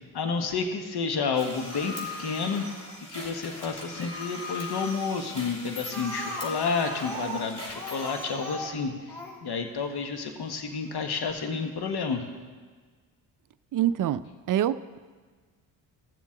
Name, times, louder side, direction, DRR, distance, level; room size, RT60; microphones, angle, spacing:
voice 1, 0.1-2.6 3.1-9.2 9.4-12.2, left 5 dB, 50° left, 5 dB, 1.4 m, -30 dB
sound 1, 1.4-8.2, left 2 dB, 30° left, 3.3 m, -39 dB
Speech, 5.9-9.4 10.4-10.5 10.9-11.0 11.2-11.3, equal, 5° left, 3.2 m, -38 dB
voice 2, 13.7-14.2 14.5-15.0, right 11 dB, 45° right, 14 dB, 0.5 m, -25 dB
15.0 x 7.2 x 3.8 m, 1.5 s
hypercardioid pair, 55°, 49 cm